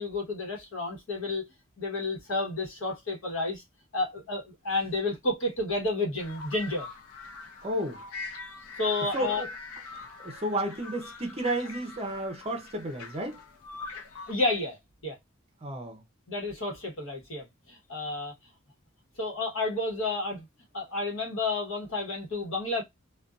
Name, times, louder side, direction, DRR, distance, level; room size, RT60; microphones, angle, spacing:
voice 1, 0.0-1.5 1.8-3.6 3.9-6.9 8.8-9.4 14.3-14.8 15.0-15.2 16.3-18.3 19.2-20.5 20.7-22.8, left 2 dB, 65° left, 1.1 m, -31 dB
sound 1, 6.2-14.3, left 4 dB, 90° left, 0.5 m, -43 dB
voice 2, 7.6-8.0 9.1-9.5 10.0-13.4 15.6-16.0, right 1 dB, 30° right, 0.5 m, -32 dB
2.5 x 2.2 x 2.3 m
head